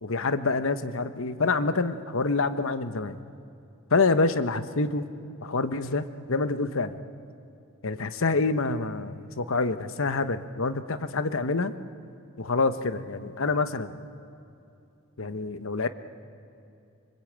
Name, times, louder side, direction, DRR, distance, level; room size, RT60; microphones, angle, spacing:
voice 1, 0.0-3.2 3.9-5.1 5.4-7.0 7.8-11.7 12.4-14.0 15.2-15.9, left 3 dB, 65° left, 10 dB, 1.1 m, -27 dB
25.5 x 24.0 x 8.8 m, 2.7 s
head